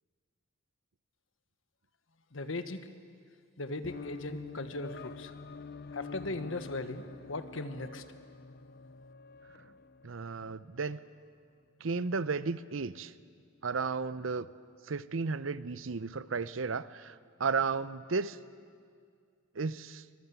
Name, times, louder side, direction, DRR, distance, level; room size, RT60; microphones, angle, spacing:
voice 1, 2.3-2.9 3.6-5.3 5.9-8.0, left 2 dB, 75° left, 10 dB, 1.4 m, -38 dB
sound 1, 3.8-11.2, left 4 dB, 50° left, 0.6 m, -47 dB
voice 2, 10.0-11.0 11.8-13.1 13.6-14.5 14.9-18.4 19.5-20.0, right 4 dB, 75° right, 16 dB, 0.7 m, -33 dB
24.0 x 22.5 x 8.3 m, 2.1 s
head